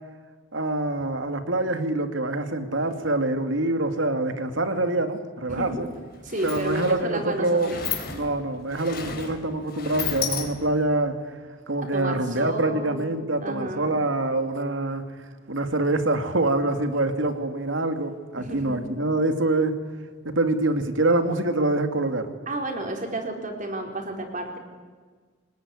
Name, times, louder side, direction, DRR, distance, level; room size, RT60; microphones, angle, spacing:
voice 1, 0.5-5.9 6.4-7.8 8.1-11.4 11.7-15.2 15.5-19.7 20.2-22.3, right 2 dB, 75° right, 8 dB, 2.5 m, -25 dB
voice 2, 5.5-5.8 6.2-7.9 11.9-13.1 13.4-14.0 18.4-18.9 22.5-24.6, right 1 dB, 45° right, 3 dB, 4.6 m, -32 dB
Sliding door, 5.6-5.7 6.0-10.9, left 7 dB, 50° left, 3.8 m, -34 dB
25.5 x 19.5 x 9.8 m, 1.5 s
head